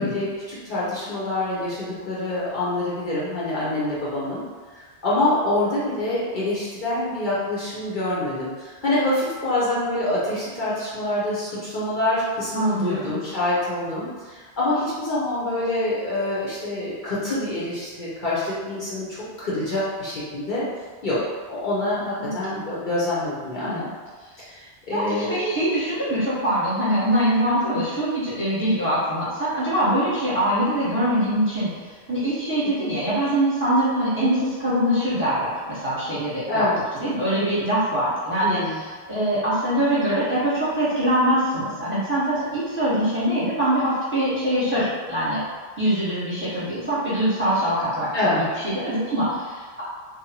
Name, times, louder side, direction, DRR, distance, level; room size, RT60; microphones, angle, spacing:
voice 1, 0.0-4.4 4.7-20.7 21.0-21.2 21.5-23.8 24.4-25.3 32.6-32.9 36.5-36.8 38.4-38.8 48.1-48.4, left 1 dB, 55° left, -8 dB, 0.7 m, -26 dB
voice 2, 12.5-13.2 22.2-22.6 23.6-23.9 24.9-36.6 36.9-45.4 45.8-48.1 48.4-49.8, right 1 dB, 15° right, -10 dB, 0.9 m, -23 dB
2.7 x 2.1 x 2.8 m, 1.5 s
omnidirectional pair, 1.1 m